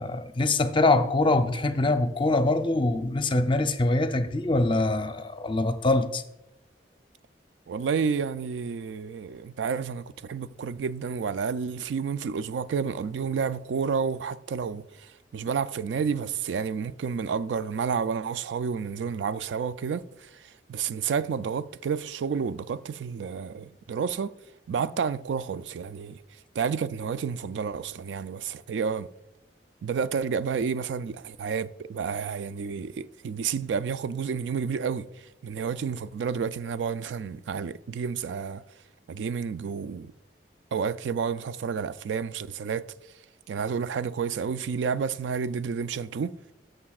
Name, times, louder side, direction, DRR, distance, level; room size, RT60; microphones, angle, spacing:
voice 1, 0.0-6.2, left 2 dB, 30° left, 0.6 m, -24 dB
voice 2, 7.7-24.3 24.7-26.2 26.6-29.1 29.8-35.1 35.4-38.6 39.1-40.1 40.7-42.9 43.5-46.4, right 6 dB, 90° right, 0.3 m, -30 dB
14.5 x 6.7 x 2.4 m
head